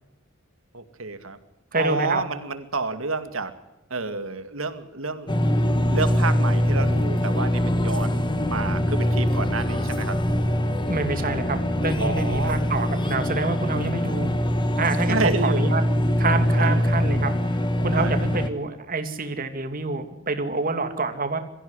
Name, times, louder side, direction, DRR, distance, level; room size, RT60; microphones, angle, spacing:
voice 1, 0.7-1.4 1.7-3.5 3.9-5.3 5.9-10.2 12.0-12.6 15.0-15.8 16.5-16.8 17.9-18.1, right 3 dB, 80° right, 10 dB, 2.3 m, -29 dB
voice 2, 1.7-2.2 10.9-14.3 14.8-15.8 16.2-21.4, right 3 dB, 45° right, 7 dB, 2.6 m, -27 dB
sound 1, 5.3-18.5, equal, 25° left, 1.6 m, -23 dB
23.5 x 15.5 x 9.8 m, 0.92 s
head